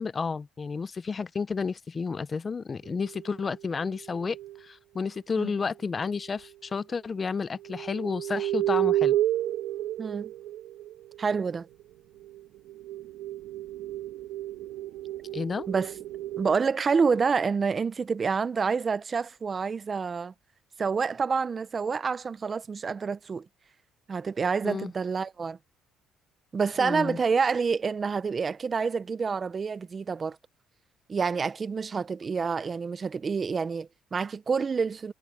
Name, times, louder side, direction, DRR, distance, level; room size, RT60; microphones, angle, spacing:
voice 1, 0.0-9.2 15.3-15.7 24.6-24.9 26.8-27.2, left 5 dB, 25° left, 0.4 m, -31 dB
sound 1, 2.9-4.6 6.2-6.3 7.6-11.2 12.2-16.5, right 14 dB, 80° right, 1.2 m, -31 dB
voice 2, 10.0-10.3 11.2-11.7 15.7-15.9 16.4-20.3 20.8-23.5 24.1-25.6 26.5-30.4 31.1-35.1, right 5 dB, 25° right, 0.5 m, -28 dB
cardioid pair, 140°, 0 cm